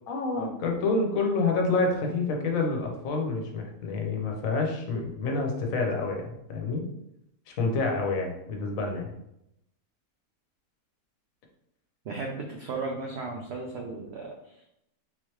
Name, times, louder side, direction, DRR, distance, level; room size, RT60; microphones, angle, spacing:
voice 1, 0.1-6.8 7.5-9.1, left 3 dB, 65° left, 2 dB, 1.2 m, -28 dB
voice 2, 12.0-14.7, right 3 dB, 65° right, 1 dB, 0.6 m, -35 dB
3.7 x 3.2 x 3.0 m, 0.80 s
omnidirectional pair, 1.6 m